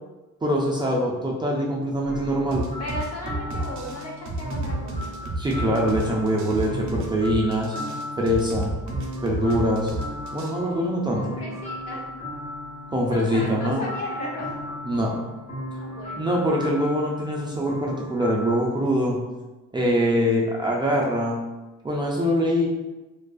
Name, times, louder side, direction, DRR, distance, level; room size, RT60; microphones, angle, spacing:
voice 1, 0.4-2.6 5.4-7.8 8.2-8.7 9.2-10.0 10.3-11.4 12.9-13.8 14.9-15.1 16.2-19.2 19.7-21.4 21.8-22.7, equal, 15° right, -4 dB, 0.3 m, -23 dB
sound 1, 2.0-18.5, left 1 dB, 25° left, 1.0 m, -36 dB
sound 2, 2.5-10.5, right 2 dB, 70° right, 0.5 m, -31 dB
voice 2, 2.8-5.2 9.4-9.6 10.6-10.8 11.1-12.1 13.1-14.6 15.7-16.4, left 1 dB, 60° left, -3 dB, 0.8 m, -35 dB
2.5 x 2.3 x 2.3 m, 1.1 s
cardioid pair, 90°, 30 cm